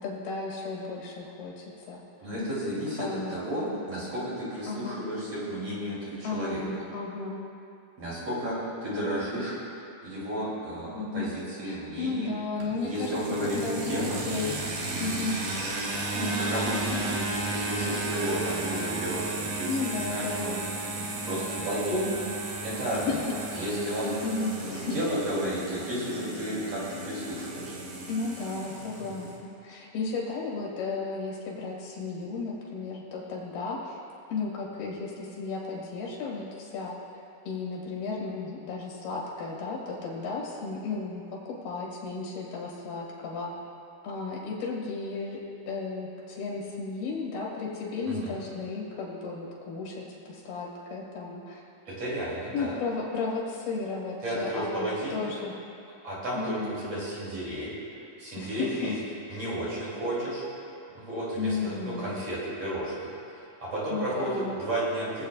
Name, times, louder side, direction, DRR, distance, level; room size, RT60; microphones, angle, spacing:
voice 1, 0.0-2.0 3.0-3.4 4.7-5.0 6.2-7.4 10.9-11.3 11.6-13.1 13.4-14.5 15.0-15.4 16.9-17.0 19.7-20.5 23.0-23.2 24.2-25.0 28.1-34.0 34.3-36.9 37.5-43.5 44.0-45.4 45.7-51.6 52.5-55.5 56.4-56.9 58.4-59.0 59.3-59.5 61.4-62.2 63.9-64.6, left 4 dB, 80° left, -3 dB, 3.8 m, -34 dB
voice 2, 2.2-6.7 8.0-9.6 10.0-12.4 12.8-14.2 16.1-17.2 17.5-19.7 19.9-20.6 20.9-22.1 22.6-24.1 24.6-27.8 48.1-48.4 51.9-52.7 54.2-55.3 56.0-57.8 58.2-59.0 59.3-60.4 60.9-63.1 63.3-65.2, right 1 dB, 40° right, -9 dB, 3.8 m, -32 dB
sound 1, 12.6-29.4, right 2 dB, 85° right, 3.5 m, -34 dB
23.5 x 8.2 x 2.4 m, 2.5 s
omnidirectional pair, 4.3 m